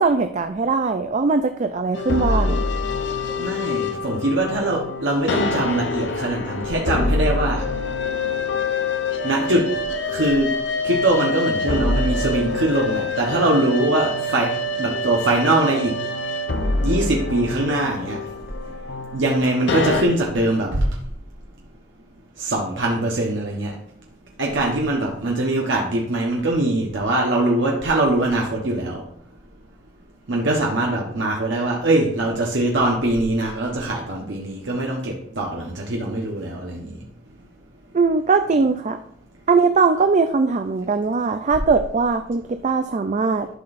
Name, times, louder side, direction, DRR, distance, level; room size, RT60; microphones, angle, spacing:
voice 1, 0.0-2.6 37.9-39.0 39.5-43.5, right 4 dB, 40° right, 8 dB, 0.4 m, -20 dB
sound 1, 1.9-20.0, left 2 dB, 70° left, 0.8 m, -25 dB
voice 2, 3.4-7.6 9.2-9.7 10.1-10.5 10.8-14.5 14.8-15.9 16.8-18.2 19.1-20.9 22.4-23.8 24.4-29.0 30.3-37.0, right 1 dB, 80° right, -1 dB, 1.1 m, -22 dB
11.5 x 5.9 x 2.6 m, 0.68 s
head